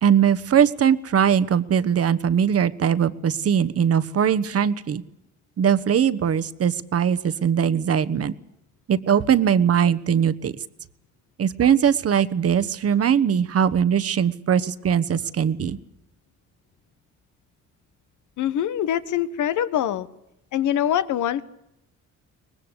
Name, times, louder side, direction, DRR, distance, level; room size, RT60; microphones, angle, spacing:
voice 1, 0.0-5.0 5.6-8.3 8.9-10.6 11.4-15.8, right 8 dB, 50° right, 14 dB, 1.3 m, -20 dB
voice 2, 18.4-20.1 20.5-21.4, left 10 dB, 75° left, 14 dB, 1.4 m, -24 dB
23.5 x 20.0 x 8.2 m, 0.84 s
cardioid pair, 90°, 30 cm